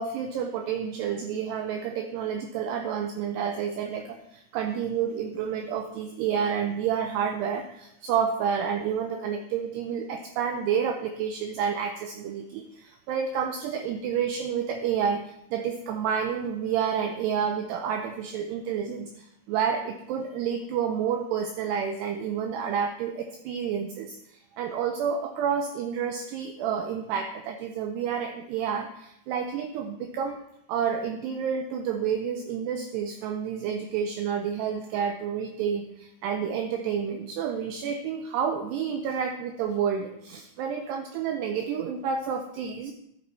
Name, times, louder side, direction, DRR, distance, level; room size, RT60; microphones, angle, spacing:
voice 1, 0.0-30.4 30.7-42.9, right 7 dB, 85° right, 5 dB, 2.4 m, -29 dB
12.0 x 8.3 x 4.1 m, 0.79 s
omnidirectional pair, 5.5 m